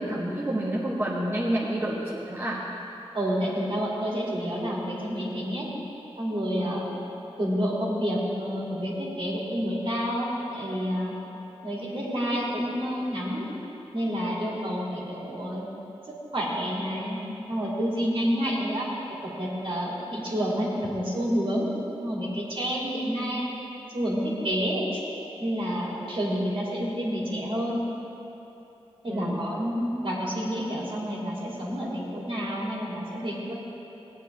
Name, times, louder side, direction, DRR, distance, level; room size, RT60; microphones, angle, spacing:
voice 1, 0.0-2.6 6.6-6.8 29.0-29.4, right 1 dB, 20° right, -7 dB, 1.6 m, -29 dB
voice 2, 3.1-5.7 6.2-6.9 7.4-11.1 11.6-13.5 13.9-15.7 16.1-17.2 17.5-18.9 19.2-21.7 22.0-23.4 23.9-25.0 25.4-27.8 29.0-33.5, equal, 55° right, -6 dB, 2.9 m, -29 dB
18.5 x 9.0 x 3.5 m, 3.0 s
wide cardioid pair, 85°, 11 cm